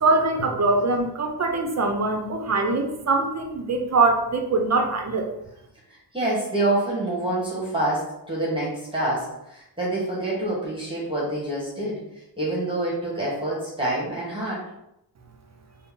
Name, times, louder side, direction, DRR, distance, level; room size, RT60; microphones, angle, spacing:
voice 1, 0.0-5.3, right 3 dB, 40° right, 3 dB, 0.6 m, -23 dB
voice 2, 5.9-12.1 12.4-14.7, right 1 dB, 15° right, -6 dB, 1.2 m, -27 dB
3.9 x 2.1 x 3.6 m, 0.83 s
wide cardioid pair, 90°, 40 cm